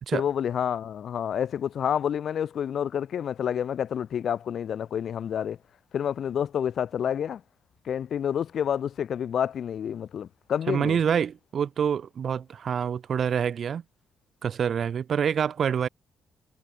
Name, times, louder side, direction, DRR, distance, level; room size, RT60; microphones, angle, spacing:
voice 1, 0.1-5.6 5.9-7.4 7.8-11.0, left 8 dB, 60° left, 2.6 m, -29 dB
voice 2, 10.7-13.8 14.4-15.9, right 7 dB, 55° right, 2.6 m, -26 dB
cardioid pair, 90°, 0 cm